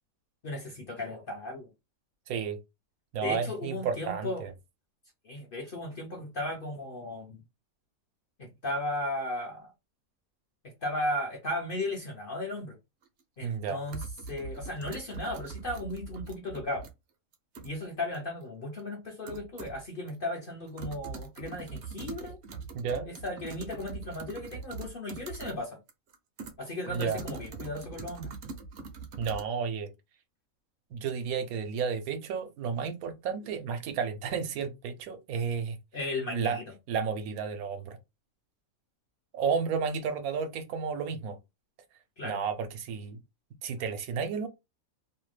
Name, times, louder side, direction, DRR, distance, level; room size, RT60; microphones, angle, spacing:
voice 1, 0.4-1.7 3.2-4.4 5.2-7.4 8.4-9.7 10.8-12.8 13.4-16.9 17.6-22.4 23.0-25.8 26.6-28.3 35.9-36.6 42.2-42.4, left 1 dB, 55° left, 0.6 m, -35 dB
voice 2, 2.3-2.6 3.1-4.5 13.4-13.8 22.7-23.1 26.9-27.2 29.2-29.9 30.9-35.8 36.3-36.6 36.9-38.0 39.3-41.4 42.2-43.2 43.6-44.5, right 6 dB, 80° right, 1.1 m, -32 dB
sound 1, 13.0-13.1 13.9-16.9 17.3-17.8 18.1-18.2 18.8-18.9 19.3-19.8 20.1-20.2 20.5-25.6 25.9-29.4, right 4 dB, 60° right, 0.8 m, -42 dB
2.7 x 2.1 x 3.1 m
omnidirectional pair, 1.5 m